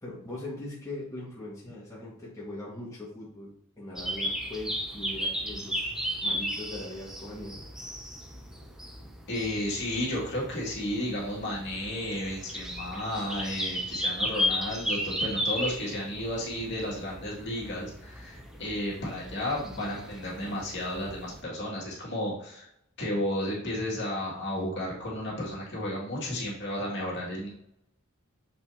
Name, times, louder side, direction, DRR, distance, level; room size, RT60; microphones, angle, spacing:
voice 1, 0.0-5.8 6.2-7.6, left 2 dB, 15° left, -7 dB, 1.9 m, -40 dB
sound 1, 3.9-21.4, equal, 5° right, 0.7 m, -35 dB
voice 2, 9.3-22.7 23.0-27.5, left 1 dB, 55° left, -5 dB, 2.5 m, -33 dB
7.1 x 5.5 x 2.9 m, 0.75 s
head